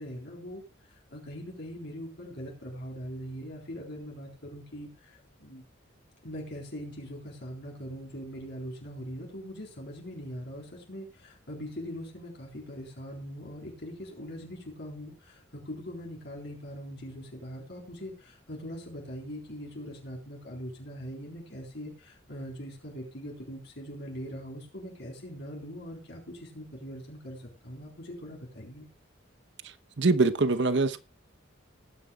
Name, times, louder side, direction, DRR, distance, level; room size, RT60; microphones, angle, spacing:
voice 1, 0.0-5.6 6.2-28.9, equal, 55° left, 3.9 m, -41 dB
voice 2, 30.0-31.0, right 3 dB, 60° right, 0.9 m, -23 dB
19.5 x 10.0 x 2.3 m
head